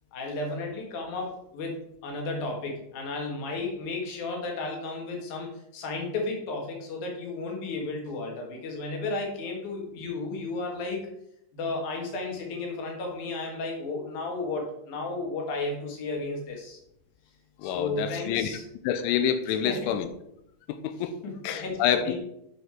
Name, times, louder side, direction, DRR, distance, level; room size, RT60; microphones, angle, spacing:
voice 1, 0.1-11.0 11.5-16.8 17.6-18.6 19.6-19.9 21.2-22.2, left 3 dB, 55° left, 1 dB, 2.3 m, -33 dB
voice 2, 17.6-18.6 18.8-20.1 20.7-21.1 21.4-22.2, left 9 dB, 85° left, 10 dB, 2.9 m, -27 dB
9.3 x 5.7 x 4.4 m, 0.77 s
omnidirectional pair, 5.6 m